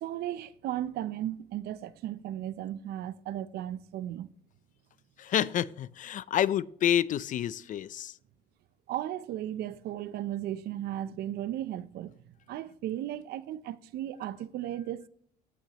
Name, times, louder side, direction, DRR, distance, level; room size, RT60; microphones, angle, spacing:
voice 1, 0.0-4.3 8.9-12.1 12.5-15.1, right 12 dB, 70° right, 0.6 m, -35 dB
voice 2, 5.2-8.1, left 10 dB, 50° left, 0.5 m, -28 dB
15.5 x 5.9 x 2.9 m
cardioid pair, 110°, 17 cm